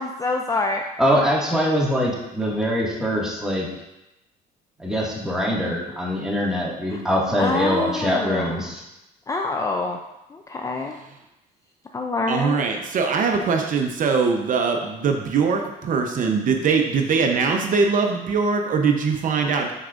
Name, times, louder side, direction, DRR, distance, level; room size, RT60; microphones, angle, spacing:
voice 1, 0.0-0.8 6.9-7.0 7.4-8.6 9.3-10.0 10.3-11.0 11.9-12.6, left 3 dB, 20° left, 2 dB, 0.5 m, -26 dB
voice 2, 1.0-3.7 4.8-8.8, equal, 5° right, -5 dB, 1.9 m, -23 dB
voice 3, 12.3-19.7, right 5 dB, 50° right, 3 dB, 0.8 m, -22 dB
11.5 x 4.6 x 2.5 m, 0.94 s
cardioid pair, 110°, 17 cm